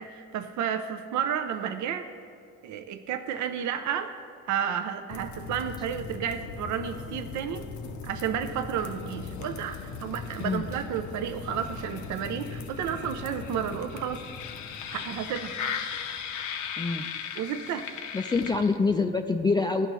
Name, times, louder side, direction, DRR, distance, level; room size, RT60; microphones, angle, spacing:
voice 1, 0.0-2.1 2.6-4.1 4.5-7.7 8.0-14.2 14.9-15.5 17.4-17.9, right 8 dB, 70° right, 7 dB, 0.5 m, -31 dB
sound 1, 5.1-19.0, left 6 dB, 75° left, 0.6 m, -38 dB
voice 2, 16.8-17.1 18.1-19.9, left 4 dB, 15° left, 5 dB, 0.3 m, -25 dB
14.0 x 5.5 x 3.0 m, 2.3 s
cardioid pair, 90°, 30 cm